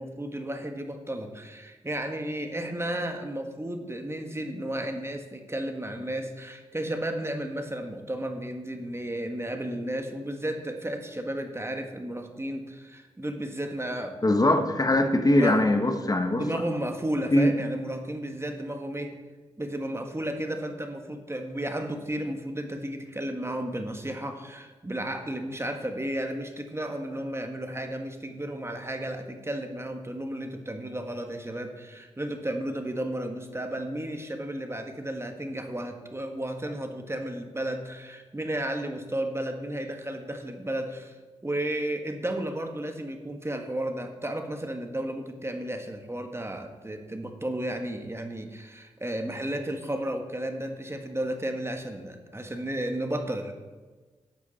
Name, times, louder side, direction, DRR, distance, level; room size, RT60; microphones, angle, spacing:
voice 1, 0.0-14.2 15.3-15.6 16.4-19.2 19.6-41.2 41.4-53.5, right 1 dB, 20° right, 5 dB, 1.7 m, -33 dB
voice 2, 14.2-16.6 17.3-17.7, left 1 dB, 30° left, 6 dB, 1.4 m, -22 dB
12.5 x 8.3 x 4.2 m, 1.3 s
supercardioid pair, 40°, 13 cm